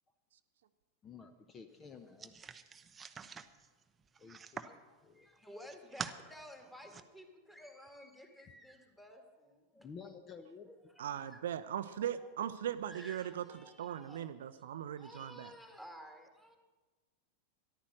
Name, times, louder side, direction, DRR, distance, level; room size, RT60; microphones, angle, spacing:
voice 1, 1.0-2.4 4.2-4.6 5.0-5.3 9.8-10.7, left 5 dB, 25° left, 9 dB, 0.7 m, -52 dB
sound 1, 2.2-4.8 5.3-6.2 6.6-7.0, right 6 dB, 20° right, 0.6 m, -46 dB
voice 2, 4.6-10.1 10.7-11.6 12.1-12.3 12.8-14.3 14.7-16.6, equal, 5° left, 4 dB, 1.9 m, -54 dB
voice 3, 11.0-13.4 13.8-15.5, right 10 dB, 60° right, 11 dB, 0.5 m, -39 dB
13.5 x 11.5 x 6.2 m, 1.3 s
figure-of-eight pair, 90°, 0 cm